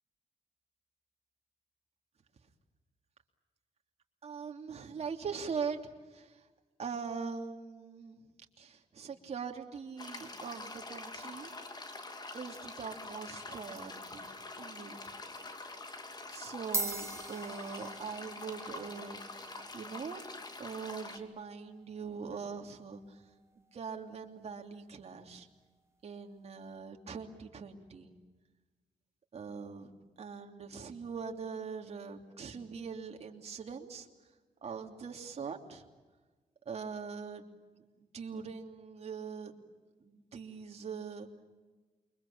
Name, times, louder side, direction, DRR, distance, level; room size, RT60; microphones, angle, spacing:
voice 1, 4.2-6.5 6.8-8.2 8.6-11.5 12.3-15.1 16.3-19.2 19.7-20.2 20.6-23.2 23.6-25.5 26.0-28.1 29.3-34.1 34.6-35.8 36.6-37.5 38.1-39.6 40.0-41.3, right 5 dB, 50° right, 2 dB, 3.0 m, -42 dB
sound 1, 10.0-21.2, left 2 dB, 30° left, 2.8 m, -45 dB
sound 2, 15.1-15.4 16.2-16.3 16.6-25.3, right 2 dB, 20° right, 2.3 m, -44 dB
28.5 x 23.5 x 8.7 m, 1.3 s
wide cardioid pair, 120°, 14 cm